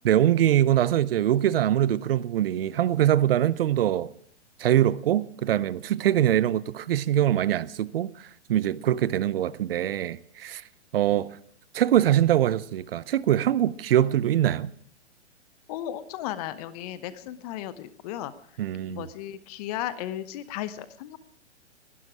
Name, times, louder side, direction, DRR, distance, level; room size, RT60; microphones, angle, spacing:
voice 1, 0.0-4.1 4.6-8.1 8.5-10.6 10.9-11.3 11.7-14.7 18.6-19.1, right 11 dB, 55° right, 0.7 m, -23 dB
voice 2, 15.7-18.3 18.9-21.2, left 12 dB, 35° left, 0.9 m, -35 dB
20.0 x 12.0 x 4.8 m
hypercardioid pair, 125°, 35 cm